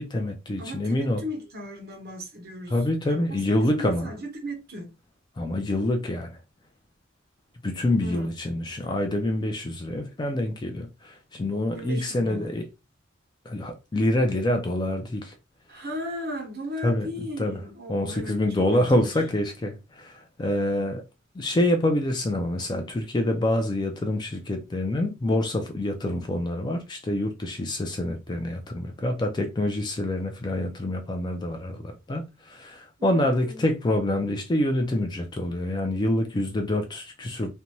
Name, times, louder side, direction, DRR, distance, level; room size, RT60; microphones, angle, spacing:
voice 1, 0.0-1.2 2.7-4.1 5.4-6.4 7.6-12.7 13.5-15.3 16.8-17.1 17.4-17.6 17.9-21.0 21.4-37.5, left 1 dB, 20° left, 0.3 m, -26 dB
voice 2, 0.6-2.7 3.1-4.9 8.0-8.3 11.7-12.6 15.7-18.4 18.7-19.1 33.0-33.7, equal, 50° right, 1.0 m, -37 dB
2.6 x 2.2 x 2.9 m
head